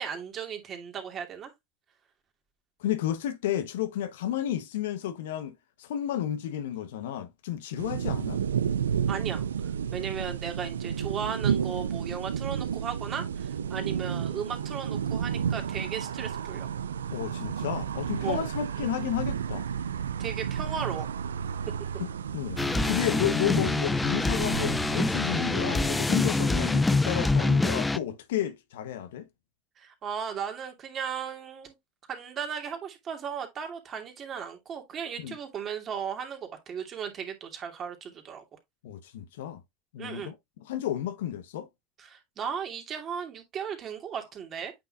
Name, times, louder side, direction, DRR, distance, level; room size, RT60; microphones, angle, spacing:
voice 1, 0.0-1.5 9.1-16.7 18.2-18.4 20.2-21.1 29.8-31.7 32.1-38.4 40.0-40.3 42.0-44.7, right 7 dB, 40° right, 2.6 m, -36 dB
voice 2, 2.8-8.4 17.1-19.7 22.0-22.1 22.3-29.3 35.2-35.4 38.8-39.6 39.9-40.3 40.6-41.7, left 11 dB, 75° left, 1.0 m, -32 dB
sound 1, 7.8-25.8, right 8 dB, 85° right, 0.5 m, -32 dB
sound 2, 22.6-28.0, left 2 dB, 10° left, 0.6 m, -26 dB
8.8 x 5.7 x 2.4 m
hypercardioid pair, 80°, 0 cm